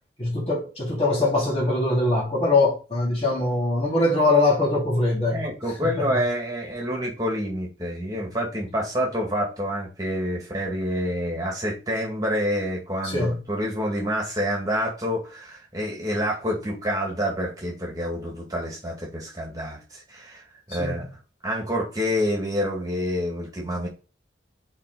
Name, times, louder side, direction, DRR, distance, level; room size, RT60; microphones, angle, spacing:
voice 1, 0.2-5.5 5.8-6.2 13.0-13.4 20.8-21.0, left 2 dB, 30° left, 2.5 m, -22 dB
voice 2, 5.3-20.4 20.7-21.1 21.4-23.9, equal, 20° right, 2.1 m, -27 dB
5.9 x 4.4 x 4.1 m
head